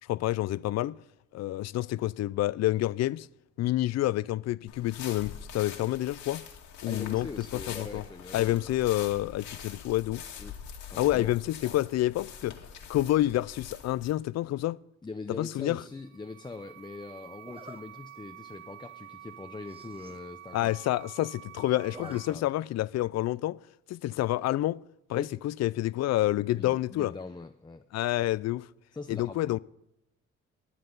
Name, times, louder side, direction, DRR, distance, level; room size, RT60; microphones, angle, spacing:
voice 1, 0.1-1.0 1.3-3.3 3.6-6.5 6.8-8.0 8.3-10.2 11.0-12.6 12.9-14.8 15.3-15.8 20.5-23.6 23.9-24.8 25.1-27.1 27.9-28.7 29.1-29.6, left 15 dB, 60° left, 0.4 m, -28 dB
sound 1, 4.7-14.1, left 7 dB, 75° left, 2.2 m, -44 dB
voice 2, 6.9-8.8 10.4-10.6 10.9-11.3 15.0-20.8 22.0-22.5 25.1-25.3 26.5-27.9 28.9-29.6, left 3 dB, 15° left, 0.6 m, -42 dB
Zipper (clothing), 15.5-15.9 17.4-17.8 18.4-18.6 18.9-19.0 19.2-19.3 19.6-20.2 20.6-20.7 20.8-21.4 21.7-22.2 22.5-22.6 24.0-24.4, right 2 dB, 20° right, 1.1 m, -50 dB
sound 2, 15.8-22.3, right 11 dB, 80° right, 0.7 m, -49 dB
21.5 x 7.7 x 3.9 m
cardioid pair, 90°, 30 cm